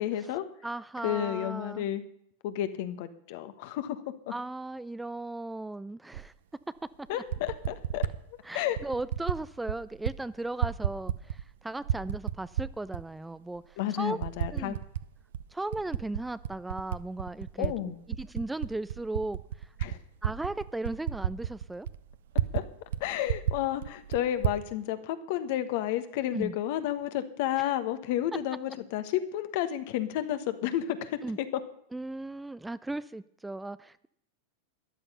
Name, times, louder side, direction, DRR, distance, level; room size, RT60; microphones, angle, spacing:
voice 1, 0.0-0.4 1.0-2.0 2.4-4.0 7.1-8.1 8.5-8.8 13.8-14.8 17.6-18.0 19.8-20.0 22.5-22.6 23.0-31.5, left 12 dB, 55° left, 11 dB, 1.3 m, -31 dB
voice 2, 0.6-1.9 4.3-6.3 7.0-7.2 8.4-14.2 14.5-14.8 15.5-19.7 20.2-21.9 26.3-26.6 27.6-27.7 31.2-31.4 31.9-34.1, right 2 dB, 5° right, 16 dB, 0.4 m, -37 dB
Typing, 6.1-6.3 7.1-8.2 8.8-9.4 9.7-10.2 10.4-11.5 11.8-13.0 13.6-13.7 14.2-15.1 15.3-17.7 18.1-22.7 22.9-23.0 23.3-24.6, right 11 dB, 65° right, 0.6 m, -31 dB
13.0 x 11.0 x 5.5 m, 0.69 s
hypercardioid pair, 95°, 0 cm